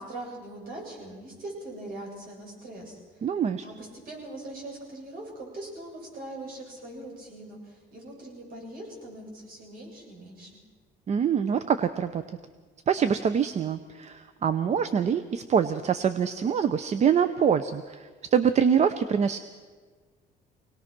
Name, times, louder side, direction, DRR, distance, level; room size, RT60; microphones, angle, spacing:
voice 1, 0.1-3.3 3.6-10.6, right 1 dB, 60° right, -1 dB, 8.0 m, -41 dB
voice 2, 3.2-3.6 11.1-12.2 12.9-19.4, right 7 dB, 40° right, 12 dB, 0.7 m, -25 dB
24.0 x 18.5 x 6.1 m, 1.5 s
cardioid pair, 110°, 17 cm